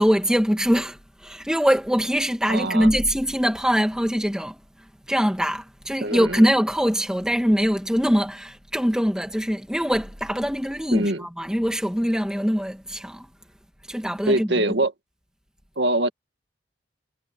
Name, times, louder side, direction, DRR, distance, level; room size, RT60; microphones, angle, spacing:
voice 1, 0.0-4.6 5.1-13.3 13.9-14.7, equal, 5° right, 2.3 m, -23 dB
voice 2, 2.5-2.9 6.0-6.4 10.9-11.2 14.3-14.9 15.8-16.1, right 1 dB, 70° right, 2.0 m, -23 dB
head